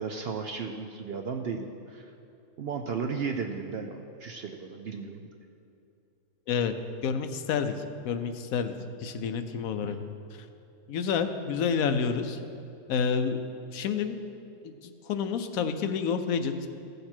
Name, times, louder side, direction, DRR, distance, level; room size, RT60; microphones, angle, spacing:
voice 1, 0.0-2.1 2.6-5.2 9.8-9.9, right 5 dB, 65° right, 4 dB, 0.6 m, -35 dB
voice 2, 7.0-7.8 8.0-8.7 9.0-10.0 10.9-12.4 12.9-13.4 13.7-14.2 14.6-16.7, left 6 dB, 75° left, 9 dB, 1.1 m, -29 dB
15.5 x 6.7 x 4.4 m, 2.7 s
omnidirectional pair, 1.5 m